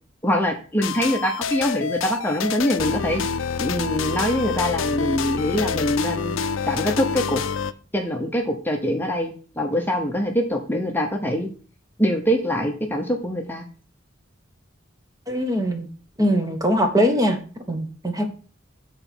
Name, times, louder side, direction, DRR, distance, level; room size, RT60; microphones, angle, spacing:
voice 1, 0.2-3.2 3.6-6.4 6.7-7.4 7.9-11.5 12.0-13.6, equal, 10° left, 2 dB, 0.9 m, -24 dB
sound 1, 0.8-7.7, left 6 dB, 85° left, 0.5 m, -27 dB
voice 2, 15.3-15.9 16.2-17.4 17.7-18.3, equal, 20° right, 5 dB, 1.1 m, -21 dB
7.9 x 4.0 x 6.1 m, 0.39 s
head